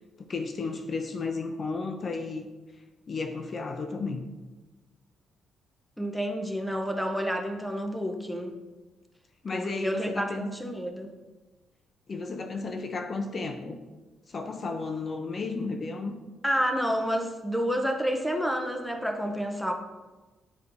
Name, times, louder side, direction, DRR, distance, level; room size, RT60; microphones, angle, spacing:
voice 1, 0.3-2.5 3.1-4.3 9.4-10.5 12.1-13.8 14.3-16.2, left 3 dB, 40° left, 6 dB, 0.6 m, -33 dB
voice 2, 6.0-8.5 9.5-11.1 16.4-19.7, equal, ahead, 4 dB, 0.7 m, -29 dB
9.8 x 4.3 x 2.6 m, 1.2 s
cardioid pair, 90°, 0 cm